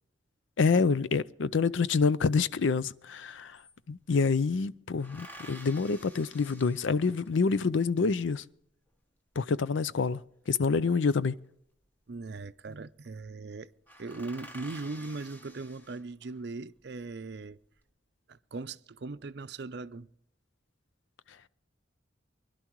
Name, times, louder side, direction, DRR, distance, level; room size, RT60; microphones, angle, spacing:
voice 1, 0.6-3.6 3.9-8.4 9.4-10.2 10.5-11.3, left 4 dB, 80° left, 0.5 m, -27 dB
sound 1, 2.9-3.0 3.2-4.3 5.0-7.5 10.2-11.2 12.4-12.7 13.0-13.2 13.5-13.6 13.9-16.4 17.0-17.7, equal, 10° left, 1.1 m, -51 dB
voice 2, 12.1-13.7 14.0-17.6 18.3-20.1, right 3 dB, 60° right, 0.5 m, -39 dB
24.0 x 11.5 x 3.1 m
head